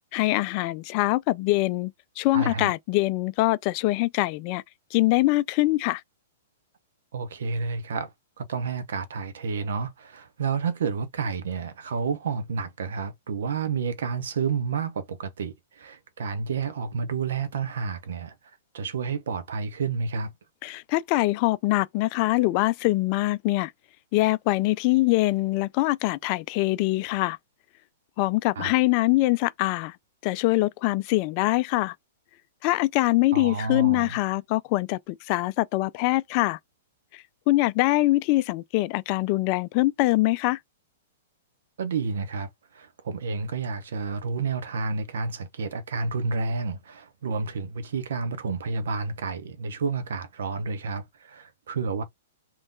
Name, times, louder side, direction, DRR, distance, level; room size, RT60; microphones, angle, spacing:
voice 1, 0.1-4.6 4.9-6.0 20.6-23.7 24.1-27.4 28.2-29.9 30.2-31.9 32.6-36.6 37.1-40.6, left 19 dB, 40° left, 0.3 m, -23 dB
voice 2, 2.3-2.7 7.1-8.1 8.4-18.3 18.7-20.3 28.6-28.7 33.3-34.2 41.8-52.0, right 5 dB, 65° right, 0.8 m, -30 dB
3.5 x 2.9 x 3.8 m
figure-of-eight pair, 110°, 0 cm